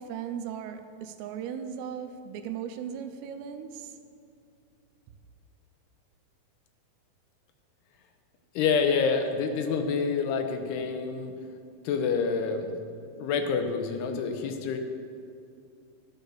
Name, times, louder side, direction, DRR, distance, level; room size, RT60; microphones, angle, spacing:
voice 1, 0.0-3.9, right 8 dB, 85° right, 8 dB, 2.8 m, -37 dB
voice 2, 8.6-11.3 11.8-12.8 13.2-14.8, left 5 dB, 80° left, 6 dB, 2.8 m, -27 dB
12.0 x 7.2 x 6.9 m, 2.5 s
omnidirectional pair, 4.8 m